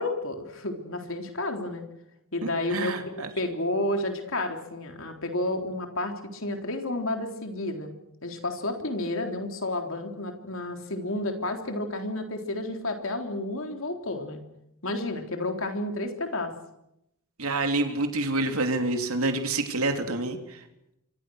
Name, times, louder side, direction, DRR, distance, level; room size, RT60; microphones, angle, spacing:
voice 1, 0.0-1.8 2.3-7.9 8.2-14.4 14.8-16.5, left 2 dB, 65° left, 5 dB, 3.6 m, -31 dB
voice 2, 2.7-3.3 17.4-20.6, right 2 dB, 85° right, 6 dB, 3.1 m, -27 dB
28.0 x 25.0 x 6.4 m, 0.84 s
head